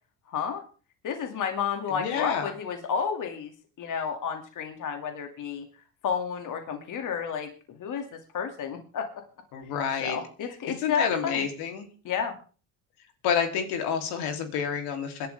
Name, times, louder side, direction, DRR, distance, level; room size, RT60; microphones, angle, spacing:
voice 1, 0.3-0.6 1.0-5.7 6.0-9.2 10.0-11.4 12.0-12.4, left 7 dB, 55° left, 5 dB, 2.5 m, -31 dB
voice 2, 2.0-2.5 9.5-10.2 10.8-11.9 13.2-15.3, left 7 dB, 80° left, 5 dB, 3.2 m, -28 dB
26.5 x 11.5 x 3.5 m, 0.39 s
cardioid pair, 120°, 38 cm